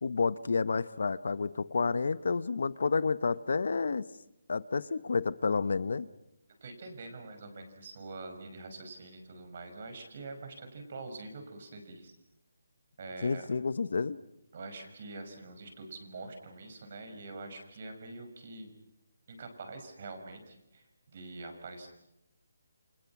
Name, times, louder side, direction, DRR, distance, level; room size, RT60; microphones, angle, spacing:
voice 1, 0.0-4.1 4.5-6.1 13.2-14.2, left 4 dB, 60° left, 17 dB, 0.9 m, -30 dB
voice 2, 6.6-12.1 13.0-13.5 14.5-18.7 19.3-21.9, right 3 dB, 40° right, 6 dB, 5.7 m, -45 dB
29.5 x 26.0 x 6.0 m, 0.87 s
hypercardioid pair, 175°, 0 cm